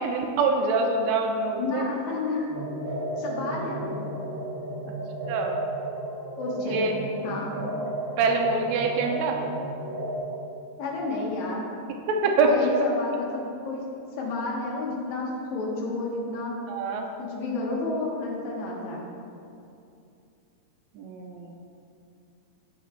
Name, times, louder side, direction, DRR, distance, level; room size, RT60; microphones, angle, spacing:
voice 1, 0.0-1.9 5.3-5.6 6.6-6.9 8.2-9.4 12.1-12.8 16.7-17.1 20.9-21.5, right 3 dB, 80° right, 2 dB, 1.6 m, -25 dB
voice 2, 1.6-2.5 2.9-4.0 6.4-7.6 10.8-11.7 12.4-13.9 14.2-16.5 17.2-19.0, left 3 dB, 65° left, -3 dB, 2.3 m, -31 dB
sound 1, 2.5-10.2, right 1 dB, 65° right, 1.3 m, -33 dB
7.2 x 5.6 x 4.3 m, 2.6 s
omnidirectional pair, 3.8 m